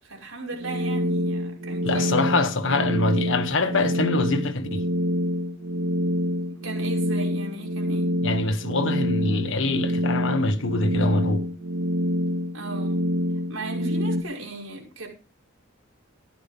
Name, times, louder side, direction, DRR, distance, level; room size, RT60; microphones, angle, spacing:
voice 1, 0.0-2.1 6.6-8.1 12.5-13.1 13.5-15.1, right 2 dB, 80° right, 5.8 m, -36 dB
sound 1, 0.5-14.2, equal, 65° right, 0.8 m, -26 dB
voice 2, 1.8-4.8 8.2-11.4, left 2 dB, 65° left, 1.4 m, -24 dB
14.5 x 12.0 x 3.6 m
head